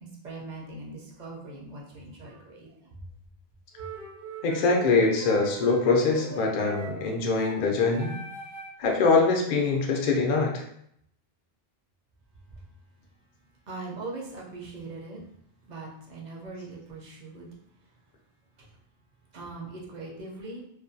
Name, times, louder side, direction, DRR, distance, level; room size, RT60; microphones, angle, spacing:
voice 1, 0.0-3.0 13.7-15.2 15.7-17.5 19.3-20.6, right 3 dB, 50° right, -3 dB, 0.6 m, -41 dB
sound 1, 3.8-8.9, right 1 dB, 80° right, 0.9 m, -41 dB
voice 2, 4.4-8.1 8.8-10.6, left 3 dB, 55° left, 1 dB, 0.6 m, -23 dB
2.4 x 2.2 x 2.5 m, 0.72 s
omnidirectional pair, 1.1 m